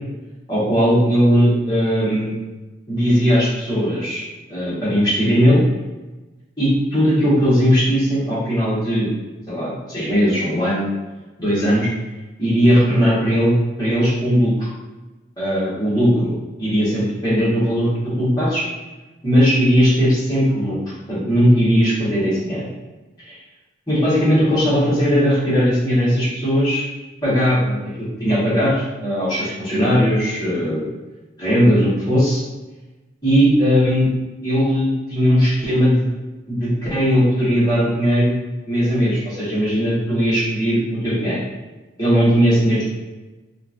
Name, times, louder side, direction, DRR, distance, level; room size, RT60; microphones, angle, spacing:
voice 1, 0.5-2.3 2.9-4.2 4.5-5.6 6.6-9.1 9.5-10.9 11.4-11.9 12.4-14.7 15.4-16.3 16.6-18.6 19.2-20.8 21.1-22.6 23.3-23.4 23.9-26.8 27.2-30.9 31.4-32.4 33.2-34.1 34.4-36.0 36.5-38.4 38.7-41.4 42.0-42.8, equal, 20° left, -10 dB, 1.1 m, -18 dB
2.9 x 2.4 x 2.5 m, 1.2 s
head